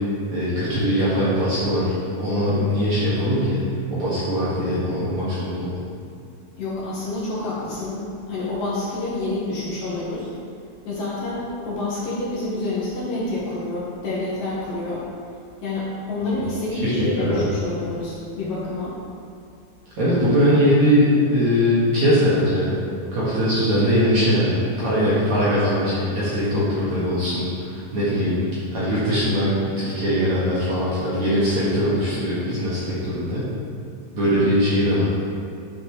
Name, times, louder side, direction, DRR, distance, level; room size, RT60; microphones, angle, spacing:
voice 1, 0.3-3.6 3.9-5.8 16.3-16.4 16.7-17.5 20.0-22.8 23.1-28.4 28.7-33.5 34.1-35.1, equal, 55° right, -10 dB, 2.4 m, -21 dB
voice 2, 6.6-8.0 8.3-10.3 10.8-15.0 15.6-18.9, left 2 dB, 65° left, -8 dB, 2.6 m, -28 dB
9.5 x 7.4 x 3.1 m, 2.5 s
omnidirectional pair, 5.0 m